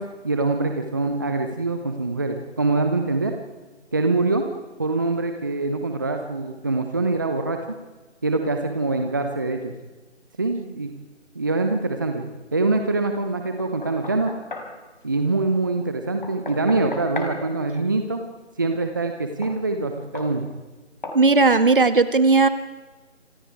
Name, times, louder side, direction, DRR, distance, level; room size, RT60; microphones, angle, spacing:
voice 1, 0.0-3.3 3.9-4.4 4.8-7.6 8.2-9.7 10.4-10.9 11.3-12.3 12.5-14.3 15.0-18.2 18.6-20.4, right 3 dB, 15° right, 5 dB, 1.0 m, -24 dB
Knock, 13.6-14.8 16.2-17.4 19.4-19.6 20.2-20.4 21.0-21.3, left 2 dB, 45° left, 4.9 m, -35 dB
voice 2, 21.1-22.5, right 3 dB, 45° right, 11 dB, 1.9 m, -16 dB
28.0 x 27.0 x 4.8 m, 1.2 s
figure-of-eight pair, 160°, 35 cm